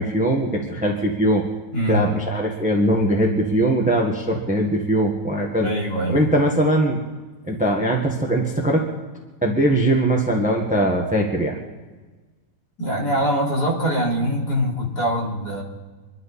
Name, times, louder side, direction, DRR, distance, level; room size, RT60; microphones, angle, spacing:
voice 1, 0.0-1.5 1.9-5.7 6.1-7.0 7.5-8.9 9.4-11.6, right 1 dB, 5° right, 1 dB, 1.3 m, -21 dB
voice 2, 1.7-2.1 5.6-6.3 12.8-15.6, equal, 50° left, -4 dB, 3.9 m, -23 dB
26.0 x 11.5 x 4.2 m, 1.3 s
omnidirectional pair, 2.4 m